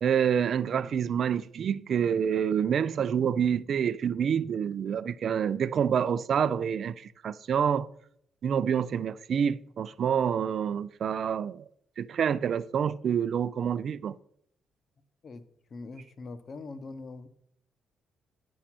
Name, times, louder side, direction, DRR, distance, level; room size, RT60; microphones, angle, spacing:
voice 1, 0.0-7.9 8.4-11.6 12.0-14.2, right 8 dB, 60° right, 0.5 m, -27 dB
voice 2, 15.7-17.3, left 3 dB, 45° left, 1.0 m, -42 dB
9.8 x 6.4 x 5.9 m
cardioid pair, 90°, 0 cm